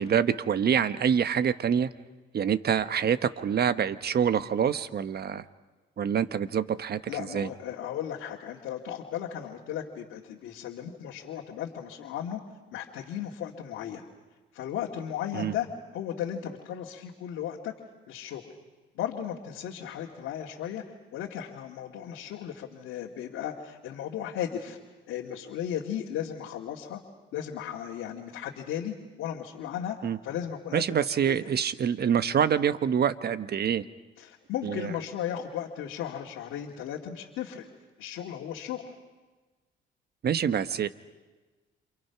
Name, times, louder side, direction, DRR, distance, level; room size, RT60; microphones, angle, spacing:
voice 1, 0.0-1.9 2.3-5.4 6.0-7.0 7.3-7.5 15.3-15.5 30.0-30.2 30.7-33.8 34.6-34.9 40.2-40.9, right 8 dB, 55° right, 12 dB, 1.2 m, -26 dB
voice 2, 7.1-12.4 12.7-14.1 14.5-15.7 15.9-17.7 18.1-18.5 19.0-20.8 21.1-24.8 25.1-27.0 27.3-30.0 30.2-31.5 34.2-37.7 38.0-38.9, left 10 dB, 90° left, -1 dB, 2.2 m, -35 dB
29.0 x 28.0 x 5.9 m, 1.3 s
cardioid pair, 90°, 20 cm